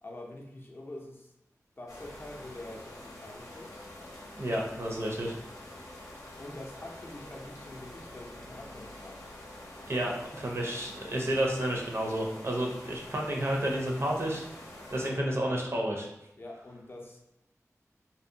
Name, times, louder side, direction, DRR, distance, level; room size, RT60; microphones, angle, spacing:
voice 1, 0.0-1.3 1.8-3.7 6.4-9.2 16.4-17.2, left 1 dB, 40° left, 0 dB, 0.4 m, -45 dB
sound 1, 1.9-15.1, left 1 dB, 90° left, 0.6 m, -47 dB
voice 2, 4.4-5.4 9.9-14.4 14.9-16.1, right 1 dB, 50° right, -1 dB, 0.5 m, -31 dB
2.6 x 2.1 x 2.6 m, 0.84 s
wide cardioid pair, 80°, 6 cm